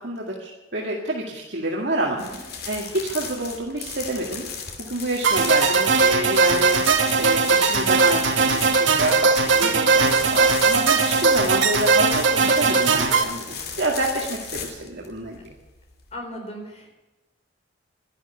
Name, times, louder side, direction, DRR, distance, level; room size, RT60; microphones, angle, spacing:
voice 1, 0.0-4.5 4.8-6.8 7.2-15.4, right 1 dB, 60° right, -2 dB, 2.1 m, -28 dB
sound 1, 2.2-16.1, left 6 dB, 55° left, 2.4 m, -36 dB
sound 2, 5.2-13.2, right 4 dB, 80° right, 1.4 m, -19 dB
voice 2, 16.1-16.9, equal, 35° left, 1 dB, 4.1 m, -36 dB
12.5 x 11.5 x 9.8 m, 1.1 s
head